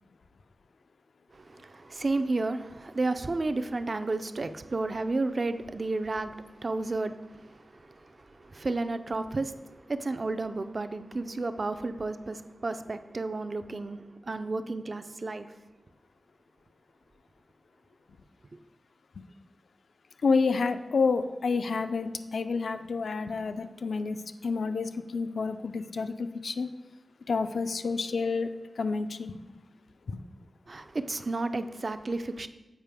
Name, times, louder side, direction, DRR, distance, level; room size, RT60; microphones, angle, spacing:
voice 1, 1.3-15.5 30.7-32.5, right 3 dB, 45° right, 0.3 m, -32 dB
voice 2, 20.2-24.2 24.4-26.7 27.3-28.5 28.8-29.4 30.1-30.2, left 4 dB, 80° left, 0.3 m, -29 dB
7.3 x 4.8 x 3.4 m
wide cardioid pair, 85°, 0 cm